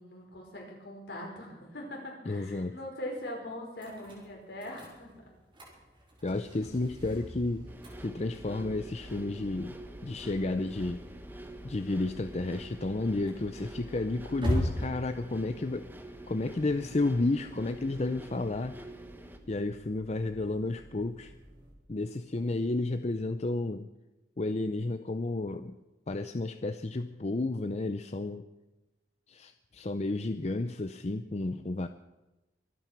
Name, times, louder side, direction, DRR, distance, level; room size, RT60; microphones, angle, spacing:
voice 1, 0.0-5.1, left 1 dB, 65° left, -1 dB, 5.4 m, -41 dB
voice 2, 2.3-2.7 6.2-7.7 8.0-9.8 10.0-11.0 11.6-15.9 16.3-18.8 19.5-21.3 21.9-23.9 24.4-25.7 26.1-28.5 29.3-31.9, left 2 dB, 40° left, 9 dB, 0.6 m, -32 dB
sound 1, 3.8-21.7, equal, 30° right, 4.3 m, -42 dB
sound 2, 7.7-19.4, right 1 dB, 10° right, 1.2 m, -47 dB
24.5 x 9.1 x 6.0 m, 1.0 s
head